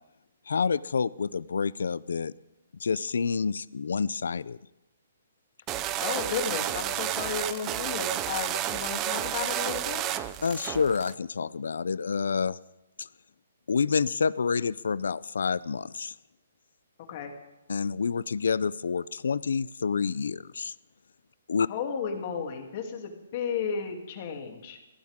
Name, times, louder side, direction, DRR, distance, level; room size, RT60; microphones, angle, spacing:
voice 1, 0.5-2.3 2.8-4.6 10.4-12.6 13.0-13.1 13.7-16.1 17.7-20.7 21.5-21.7, left 5 dB, 85° left, 19 dB, 0.5 m, -28 dB
sound 1, 5.7-11.1, right 12 dB, 20° right, 0.5 m, -31 dB
voice 2, 6.0-10.0 17.1-17.3 21.7-24.8, left 6 dB, 35° left, 2 dB, 2.9 m, -33 dB
23.5 x 16.5 x 3.7 m, 0.97 s
hypercardioid pair, 165°, 0 cm